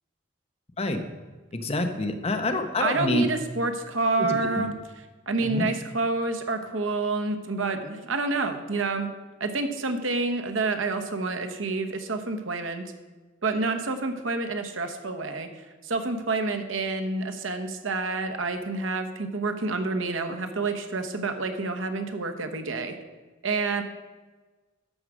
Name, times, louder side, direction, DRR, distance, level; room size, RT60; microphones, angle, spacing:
voice 1, 1.5-3.3 4.2-4.7 5.4-5.7, left 1 dB, 35° left, 6 dB, 0.9 m, -27 dB
voice 2, 2.8-4.7 5.3-9.1 9.4-12.8 13.4-23.0 23.4-23.8, right 3 dB, 85° right, 6 dB, 1.1 m, -28 dB
13.0 x 4.8 x 6.3 m, 1.3 s
head